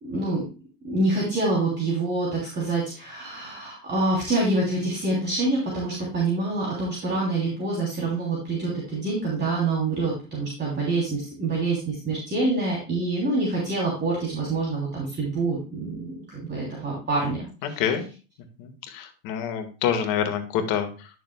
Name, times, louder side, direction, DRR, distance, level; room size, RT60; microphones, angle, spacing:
voice 1, 0.0-0.4 0.8-17.8, right 2 dB, 30° right, -4 dB, 3.1 m, -26 dB
voice 2, 17.6-18.1 18.6-21.1, left 8 dB, 65° left, 6 dB, 1.8 m, -27 dB
11.0 x 6.5 x 2.2 m, 0.34 s
supercardioid pair, 100°, 35 cm